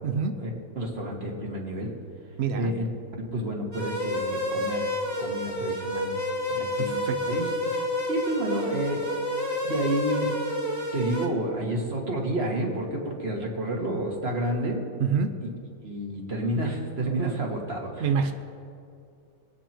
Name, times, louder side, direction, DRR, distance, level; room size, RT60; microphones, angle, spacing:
voice 1, 0.0-0.4 2.4-2.8 6.8-7.4 15.0-15.3 18.0-18.3, right 6 dB, 85° right, 8 dB, 0.5 m, -27 dB
voice 2, 0.8-1.9 2.5-2.9 3.3-4.9 5.2-6.2 6.5-7.5 8.1-9.0 9.6-10.3 10.9-14.8 15.8-18.3, right 1 dB, 35° right, 0 dB, 2.0 m, -30 dB
sound 1, 3.7-11.3, left 1 dB, 10° right, 1.4 m, -29 dB
23.5 x 9.1 x 4.5 m, 2.5 s
omnidirectional pair, 2.1 m